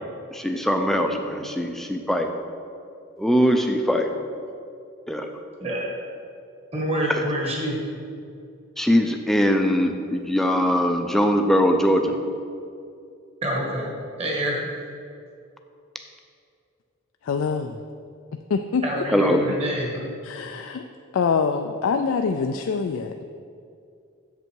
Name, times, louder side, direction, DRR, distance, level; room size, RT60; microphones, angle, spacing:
voice 1, 0.3-2.3 3.2-4.1 5.1-5.3 8.8-12.2 19.1-19.5, equal, ahead, 4 dB, 0.5 m, -21 dB
voice 2, 5.6-5.9 6.7-7.8 13.4-13.9 14.2-14.6 18.8-20.0, right 1 dB, 30° right, -2 dB, 1.6 m, -26 dB
voice 3, 17.3-17.8 18.5-19.0 20.2-20.8 21.1-23.2, left 5 dB, 70° left, 6 dB, 0.3 m, -25 dB
8.0 x 6.8 x 4.6 m, 2.4 s
head